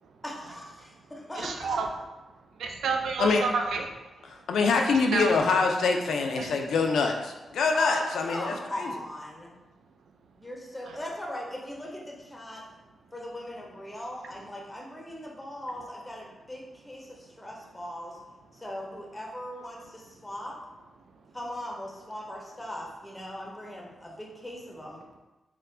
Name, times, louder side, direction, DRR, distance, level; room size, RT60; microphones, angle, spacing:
voice 1, 0.2-1.8 7.7-9.5 10.4-12.6 13.1-18.2 18.5-20.6 21.3-25.0, left 1 dB, 10° left, -1 dB, 0.5 m, -39 dB
voice 2, 1.4-1.9 2.6-3.9 5.1-5.3 6.4-6.5, right 5 dB, 90° right, 3 dB, 0.3 m, -29 dB
voice 3, 4.3-8.9, left 4 dB, 85° left, 3 dB, 0.3 m, -25 dB
4.3 x 2.0 x 2.5 m, 1.1 s
wide cardioid pair, 130°, 0 cm